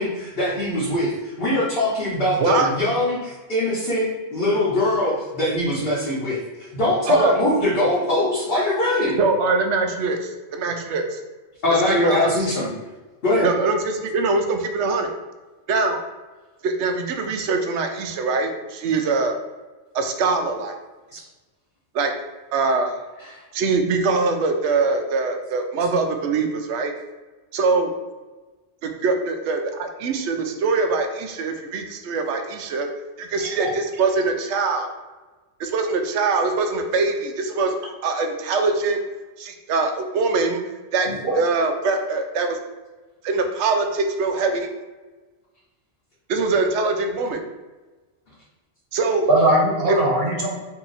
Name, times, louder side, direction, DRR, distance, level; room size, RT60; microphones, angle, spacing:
voice 1, 0.0-9.2 11.6-12.7 13.2-13.5 21.1-21.2 23.3-23.4, left 1 dB, 60° left, -9 dB, 1.1 m, -22 dB
voice 2, 2.4-2.7 7.1-7.4 9.2-11.2 11.7-12.5 13.4-15.1 15.7-16.0 16.6-19.3 19.9-20.7 21.9-22.1 22.5-22.9 23.5-26.9 27.5-27.9 28.8-32.9 33.2-34.9 35.6-39.0 39.4-40.6 40.9-41.1 41.3-42.6 43.2-44.7 46.3-47.4 48.9-49.3 49.9-50.0, right 3 dB, 90° right, 5 dB, 0.9 m, -23 dB
voice 3, 41.1-41.4 49.3-50.5, right 1 dB, 60° right, -1 dB, 1.1 m, -20 dB
2.9 x 2.8 x 3.9 m, 1.2 s
omnidirectional pair, 1.1 m